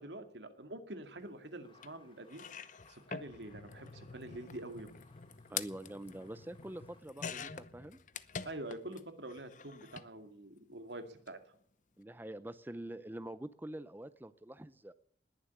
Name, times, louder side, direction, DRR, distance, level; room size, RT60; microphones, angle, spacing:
voice 1, 0.0-4.9 8.5-11.4, right 1 dB, 75° right, 8 dB, 2.2 m, -46 dB
sound 1, 1.6-7.0, left 3 dB, 30° left, 3.0 m, -66 dB
sound 2, 1.8-1.9 2.3-9.0 9.3-10.1 11.1-11.3 11.5-11.6, left 6 dB, 45° left, 0.8 m, -46 dB
voice 2, 5.5-8.0 12.0-14.9, right 1 dB, 10° right, 13 dB, 0.6 m, -45 dB
20.0 x 7.4 x 9.5 m, 0.67 s
head